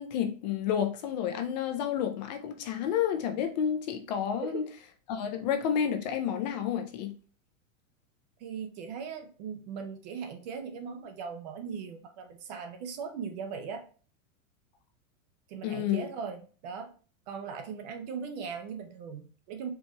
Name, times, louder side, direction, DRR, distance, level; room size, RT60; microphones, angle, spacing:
voice 1, 0.0-4.7 5.1-7.2 15.6-16.1, left 9 dB, 35° left, 0.4 m, -30 dB
voice 2, 8.4-13.8 15.5-16.9 17.3-19.7, right 6 dB, 35° right, 0.4 m, -39 dB
4.5 x 3.1 x 2.9 m
supercardioid pair, 155°, 40 cm